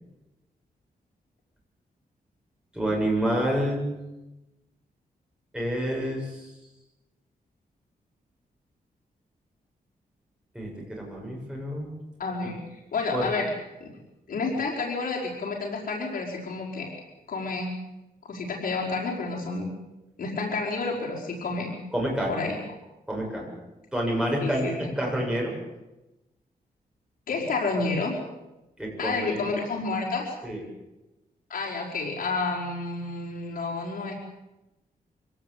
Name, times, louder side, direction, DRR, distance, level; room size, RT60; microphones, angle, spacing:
voice 1, 2.7-3.9 5.5-6.5 10.5-11.9 12.4-12.5 13.1-13.3 21.9-22.3 23.1-23.6 23.9-25.6 28.8-29.5 30.4-30.6, right 1 dB, 5° right, -2 dB, 7.7 m, -28 dB
voice 2, 12.2-13.5 13.8-13.9 14.3-16.9 17.3-17.7 18.2-19.7 20.2-21.7 22.3-22.6 24.4-24.8 27.3-28.2 29.0-30.3 31.5-34.2, left 3 dB, 70° left, -3 dB, 5.1 m, -30 dB
25.0 x 18.0 x 8.4 m, 0.99 s
wide cardioid pair, 170°, 16 cm